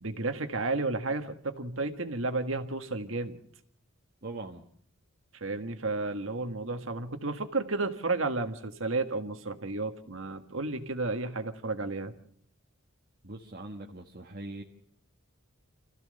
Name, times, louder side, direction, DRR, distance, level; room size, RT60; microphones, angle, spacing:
voice 1, 0.0-3.4 5.4-12.1, right 3 dB, 65° right, 8 dB, 1.7 m, -32 dB
voice 2, 4.2-4.6 13.2-14.6, right 2 dB, 45° right, 1 dB, 1.5 m, -41 dB
27.0 x 15.0 x 6.6 m, 0.64 s
head